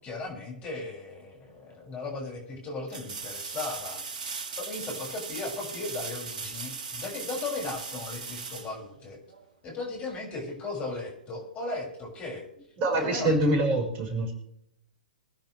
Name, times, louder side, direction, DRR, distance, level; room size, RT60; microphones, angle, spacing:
voice 1, 0.0-4.0 4.6-9.2 9.6-12.5 12.9-13.6, left 3 dB, 25° left, 0 dB, 7.0 m, -36 dB
sound 1, 1.5-1.6 2.9-9.5 12.4-12.5, right 5 dB, 60° right, 2.3 m, -38 dB
voice 2, 12.8-14.3, right 1 dB, 35° right, 1 dB, 5.5 m, -25 dB
25.5 x 10.5 x 3.5 m, 0.75 s
figure-of-eight pair, 115°, 5 cm